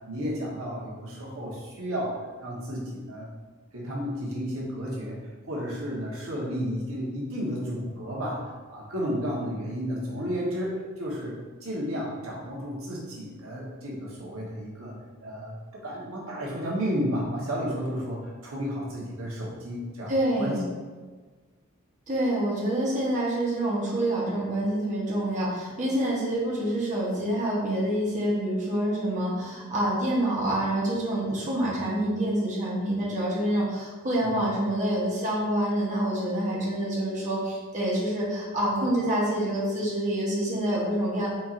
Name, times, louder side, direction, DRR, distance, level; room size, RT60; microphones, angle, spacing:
voice 1, 0.1-3.3 3.7-5.2 5.4-8.4 8.7-11.3 11.6-14.9 15.2-15.5 15.8-20.1 20.4-20.6 34.3-34.5, equal, 75° right, -4 dB, 1.2 m, -32 dB
voice 2, 20.1-20.6 22.1-41.3, right 1 dB, 35° right, -6 dB, 1.0 m, -27 dB
4.4 x 4.2 x 2.5 m, 1.4 s
head